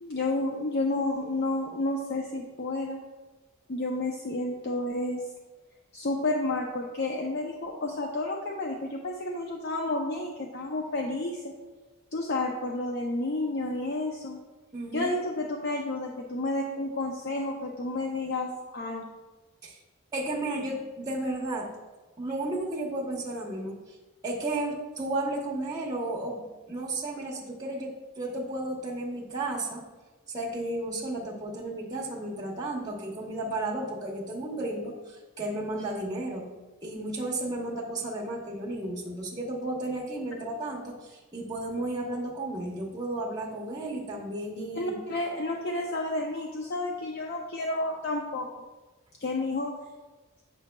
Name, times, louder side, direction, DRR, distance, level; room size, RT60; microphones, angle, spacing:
voice 1, 0.0-3.0 3.7-5.2 5.9-11.5 12.1-14.4 14.9-19.1 44.7-48.5 49.2-49.7, left 2 dB, 50° left, 0 dB, 0.5 m, -31 dB
voice 2, 14.7-15.1 19.6-19.8 20.1-21.7 22.2-24.0 24.2-29.8 30.3-36.5 36.8-44.9, right 2 dB, 20° right, -4 dB, 0.9 m, -33 dB
8.7 x 5.9 x 2.2 m, 1.2 s
head